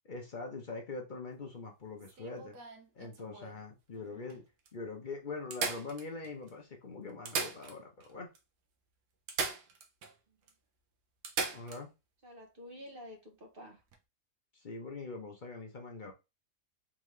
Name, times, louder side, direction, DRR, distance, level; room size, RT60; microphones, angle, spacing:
voice 1, 0.0-2.6 2.9-4.4 4.7-8.3 11.5-11.9 14.5-16.1, left 3 dB, 45° left, 0.6 m, -43 dB
sound 1, 2.0-3.6 4.3-4.4 4.7-4.8 5.5-6.5 7.1-8.1 8.4-8.5 9.3-10.1 10.5-10.6 11.2-11.8 13.8-14.0, right 5 dB, 85° right, 1.4 m, -38 dB
voice 2, 3.9-4.4 10.3-10.4 12.2-13.8, left 1 dB, 40° right, 0.9 m, -51 dB
3.7 x 3.4 x 3.1 m
omnidirectional pair, 1.7 m